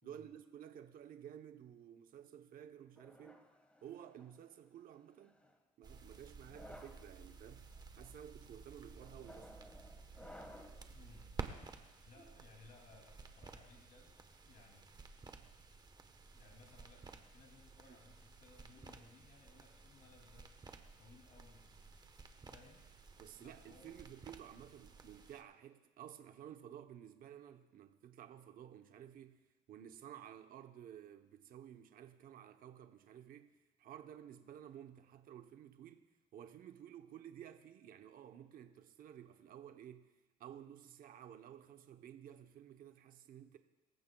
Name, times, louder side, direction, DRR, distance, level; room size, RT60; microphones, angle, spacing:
voice 1, 0.0-3.5 3.8-5.4 5.8-7.7 8.0-9.5 17.9-18.0 23.2-29.4 29.7-40.1 40.4-43.6, right 10 dB, 55° right, 0.8 m, -54 dB
sound 1, 3.0-4.4 5.2-5.6 6.4-7.1 7.7-8.0 9.0-10.9, left 1 dB, 5° left, 1.4 m, -57 dB
sound 2, 5.8-25.4, right 4 dB, 25° right, 1.1 m, -54 dB
voice 2, 10.9-11.3 11.6-14.8 16.3-20.5 21.0-21.6 22.4-22.9 23.4-23.9, left 4 dB, 60° left, 2.6 m, -63 dB
24.0 x 14.5 x 2.3 m
cardioid pair, 110°, 17 cm